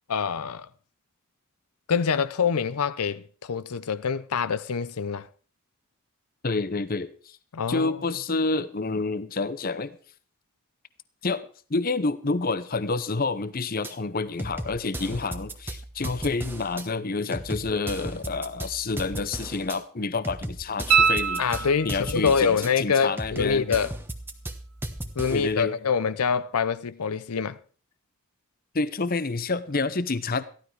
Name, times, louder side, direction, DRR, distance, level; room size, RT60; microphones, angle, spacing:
voice 1, 0.1-0.7 1.9-5.3 7.5-8.0 21.4-23.9 25.2-27.6, left 6 dB, 85° left, 0.6 m, -25 dB
voice 2, 6.4-7.4 7.7-10.0 11.2-23.7 25.3-25.7 28.7-30.4, left 3 dB, 40° left, 0.8 m, -28 dB
sound 1, 13.8-13.9 14.4-16.8 17.3-19.8 20.2-22.7 23.2-25.6, right 1 dB, 10° right, 1.1 m, -36 dB
sound 2, 20.9-22.2 25.0-25.1, right 6 dB, 85° right, 1.2 m, -23 dB
15.0 x 12.0 x 4.7 m
head